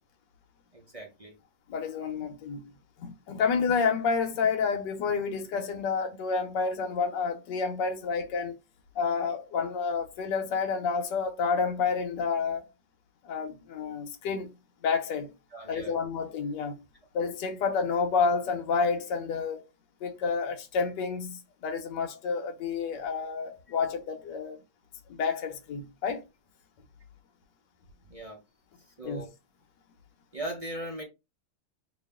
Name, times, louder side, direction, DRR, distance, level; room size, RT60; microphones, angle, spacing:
voice 1, 0.7-1.3 15.5-16.0 28.1-28.4 28.9-29.3 30.3-31.0, right 1 dB, 40° right, 0.5 m, -39 dB
voice 2, 1.7-2.7 3.0-8.5 8.9-12.7 13.2-14.5 14.8-15.3 15.7-16.7 17.1-19.6 20.0-24.6 25.1-26.2 29.0-29.2, left 5 dB, 65° left, 1.4 m, -29 dB
3.0 x 2.8 x 3.5 m
omnidirectional pair, 2.1 m